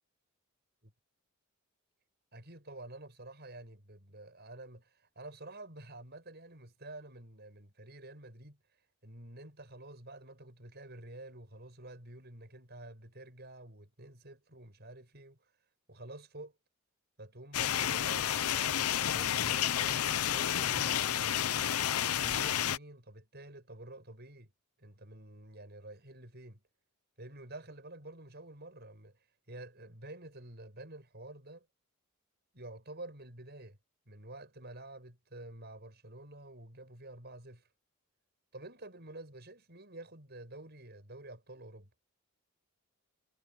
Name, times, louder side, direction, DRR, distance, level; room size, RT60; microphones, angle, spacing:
voice 1, 2.3-15.5 15.9-16.6 17.2-21.3 22.1-24.5 24.8-26.6 27.2-31.7 32.5-33.8 34.1-37.7 38.5-41.9, right 2 dB, 50° right, 7.5 m, -49 dB
sound 1, 17.5-22.8, left 10 dB, 85° left, 0.7 m, -30 dB
head